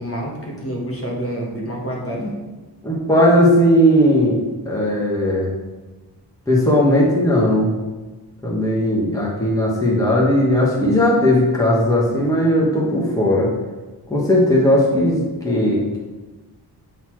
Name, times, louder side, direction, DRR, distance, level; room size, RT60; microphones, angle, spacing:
voice 1, 0.0-2.3, equal, 35° left, -2 dB, 1.4 m, -27 dB
voice 2, 2.8-5.5 6.5-7.7 8.4-13.5 14.1-16.0, equal, 10° left, -4 dB, 1.3 m, -17 dB
8.1 x 4.0 x 4.6 m, 1.2 s
wide cardioid pair, 170°, 40 cm